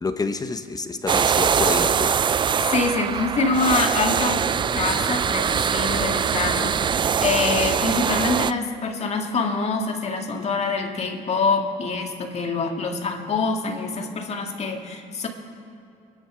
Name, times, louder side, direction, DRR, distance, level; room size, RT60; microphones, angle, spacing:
voice 1, 0.0-2.1, left 3 dB, 20° left, 9 dB, 0.8 m, -27 dB
sound 1, 1.1-8.5, right 7 dB, 30° right, 0.3 m, -22 dB
voice 2, 2.6-15.3, left 4 dB, 40° left, 3 dB, 2.1 m, -25 dB
24.5 x 10.0 x 4.9 m, 2.7 s
cardioid pair, 110°, 17 cm